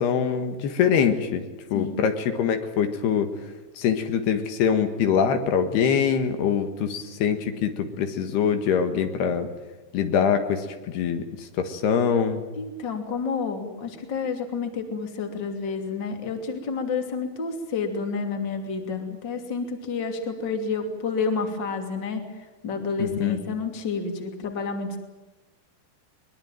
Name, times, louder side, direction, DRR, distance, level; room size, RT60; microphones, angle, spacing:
voice 1, 0.0-1.4 1.7-3.3 3.8-9.5 9.9-12.4 23.0-23.4, left 7 dB, 75° left, 7 dB, 3.7 m, -24 dB
voice 2, 12.6-22.2 22.6-25.0, left 5 dB, 30° left, 5 dB, 2.9 m, -29 dB
23.0 x 21.5 x 9.1 m, 1.1 s
omnidirectional pair, 4.7 m